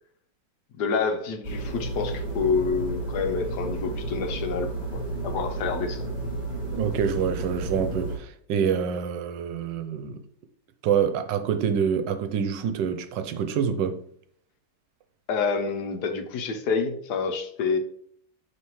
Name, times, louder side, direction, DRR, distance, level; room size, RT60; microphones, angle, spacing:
voice 1, 0.7-6.1 15.3-17.8, left 5 dB, 70° left, 1.3 m, -28 dB
sound 1, 1.4-8.2, right 2 dB, 35° right, 3.0 m, -32 dB
voice 2, 6.7-10.2 10.8-14.0, right 7 dB, 80° right, 1.3 m, -26 dB
9.0 x 3.4 x 3.1 m
omnidirectional pair, 1.9 m